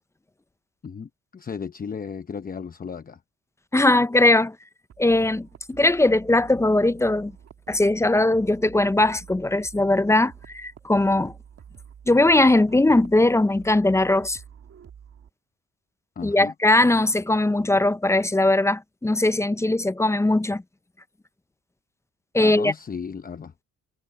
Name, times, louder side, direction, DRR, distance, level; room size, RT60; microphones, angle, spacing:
voice 1, 0.8-3.2 16.2-16.5 22.4-23.5, left 6 dB, 30° left, 0.8 m, -35 dB
voice 2, 3.7-4.6 5.0-7.3 7.7-11.3 12.1-14.4 16.2-20.6 22.3-22.7, left 2 dB, 10° left, 0.5 m, -20 dB
sound 1, 4.9-15.3, right 8 dB, 55° right, 2.2 m, -48 dB
cardioid pair, 90°, 30 cm